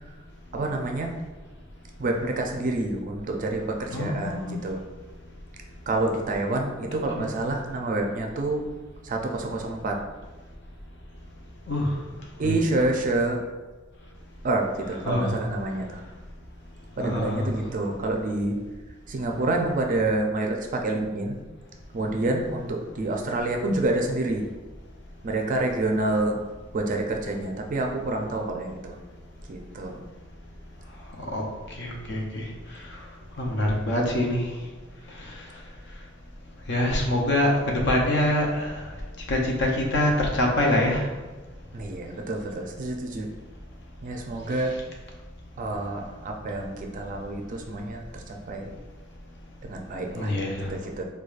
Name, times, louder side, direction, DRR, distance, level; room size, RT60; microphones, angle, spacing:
voice 1, 0.5-1.1 2.0-4.8 5.9-8.6 9.0-10.0 12.4-13.4 14.4-16.0 17.0-18.6 19.1-21.4 21.9-24.4 25.2-26.4 26.7-29.0 29.5-30.0 41.7-43.3 44.0-44.8 45.6-48.7 49.6-51.0, right 2 dB, 40° right, 2 dB, 0.4 m, -28 dB
voice 2, 3.9-4.6 7.1-7.3 11.7-11.9 12.4-12.5 15.0-15.4 17.0-17.6 31.3-31.4 31.8-32.4 33.4-34.5 36.7-38.9 39.3-41.1 50.1-50.7, left 1 dB, 60° left, 0 dB, 0.6 m, -25 dB
4.6 x 2.2 x 2.4 m, 1.3 s
head